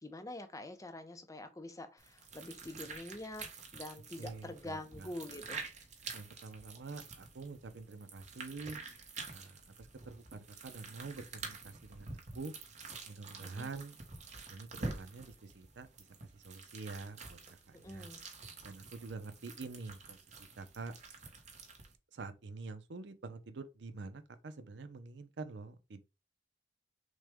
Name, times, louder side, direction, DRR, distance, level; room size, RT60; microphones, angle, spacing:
voice 1, 0.0-3.5 3.7-5.6 13.4-13.7 17.7-18.2, left 1 dB, 20° left, 0.6 m, -46 dB
sound 1, 2.0-21.9, right 3 dB, 40° right, 1.1 m, -48 dB
voice 2, 4.2-5.1 6.1-8.8 9.3-12.5 13.1-14.0 14.5-15.9 16.3-17.4 17.7-18.1 18.6-20.9 22.1-26.0, right 3 dB, 80° right, 0.6 m, -47 dB
6.2 x 2.3 x 3.5 m
head